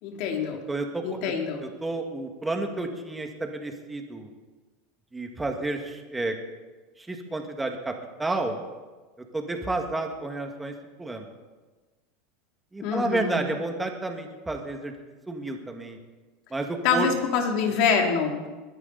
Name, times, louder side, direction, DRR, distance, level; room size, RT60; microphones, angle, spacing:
voice 1, 0.0-0.6 1.0-1.6 12.8-13.4 16.8-18.4, left 5 dB, 60° left, 2 dB, 2.8 m, -25 dB
voice 2, 0.7-1.2 1.6-4.3 5.1-6.3 7.0-7.9 8.2-8.6 9.3-11.3 12.7-14.9 15.3-16.0 16.5-17.1, right 2 dB, 10° right, 4 dB, 1.9 m, -31 dB
21.0 x 11.0 x 4.1 m, 1.3 s
supercardioid pair, 125°, 0 cm